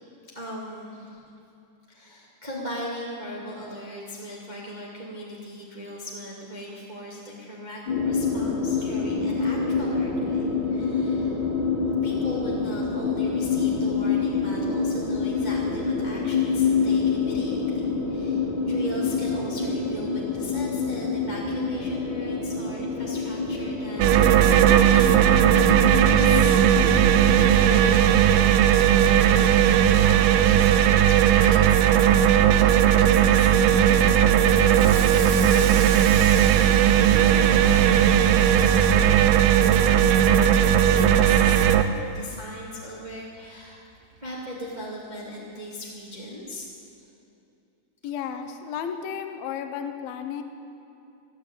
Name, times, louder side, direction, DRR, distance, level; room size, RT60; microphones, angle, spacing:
voice 1, 0.3-1.2 1.9-11.4 12.0-43.9 44.2-46.7, equal, 40° right, -5 dB, 0.5 m, -38 dB
sound 1, 7.9-27.5, left 4 dB, 45° left, 1.7 m, -26 dB
sound 2, 24.0-41.8, right 10 dB, 85° right, 2.9 m, -17 dB
Water tap faucet / Sink (filling or washing), 34.5-41.2 41.6-41.8 42.2-42.3 42.7-42.8 43.9-44.0 44.5-44.7, right 5 dB, 65° right, 3.5 m, -38 dB
voice 2, 48.0-50.4, left 8 dB, 80° left, 6 dB, 2.2 m, -33 dB
15.5 x 10.0 x 8.3 m, 2.7 s
omnidirectional pair, 5.4 m